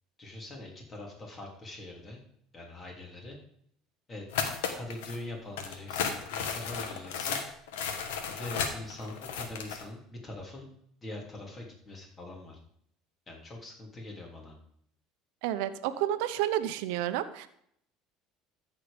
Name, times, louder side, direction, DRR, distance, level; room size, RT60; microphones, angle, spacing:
voice 1, 0.2-2.2 2.5-3.4 4.1-4.3 4.7-7.4 8.2-10.7 11.0-12.6 13.3-14.6, left 2 dB, 30° left, 0 dB, 3.3 m, -43 dB
sound 1, 4.3-5.2 5.6-9.8, left 6 dB, 90° left, 1.3 m, -34 dB
voice 2, 15.4-17.5, right 12 dB, 80° right, 11 dB, 0.7 m, -30 dB
13.5 x 4.7 x 5.2 m, 0.68 s
supercardioid pair, 95°, 0 cm